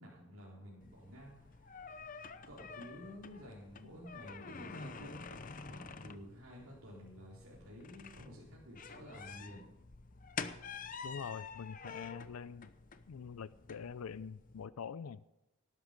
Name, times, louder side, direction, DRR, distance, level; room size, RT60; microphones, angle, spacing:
voice 1, 0.0-5.4 5.7-9.7, equal, 75° right, -6 dB, 4.1 m, -52 dB
sound 1, 0.8-14.7, left 5 dB, 40° left, 0.7 m, -48 dB
voice 2, 11.0-12.7 13.1-15.2, left 6 dB, 80° left, 17 dB, 0.4 m, -44 dB
18.5 x 11.0 x 5.2 m, 0.96 s
head